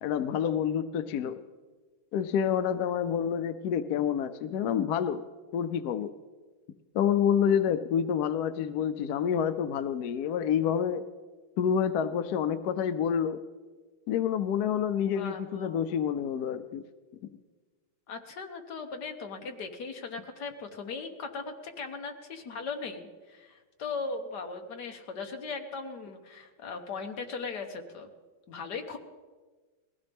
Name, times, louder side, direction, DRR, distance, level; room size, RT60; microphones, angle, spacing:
voice 1, 0.0-1.4 2.1-5.2 5.5-6.1 6.9-11.0 11.6-13.4 14.1-16.8, left 8 dB, 75° left, 10 dB, 0.8 m, -28 dB
voice 2, 15.1-15.8 18.1-28.1 28.5-29.0, left 4 dB, 55° left, 4 dB, 1.7 m, -38 dB
20.0 x 16.0 x 3.5 m, 1.3 s
omnidirectional pair, 2.3 m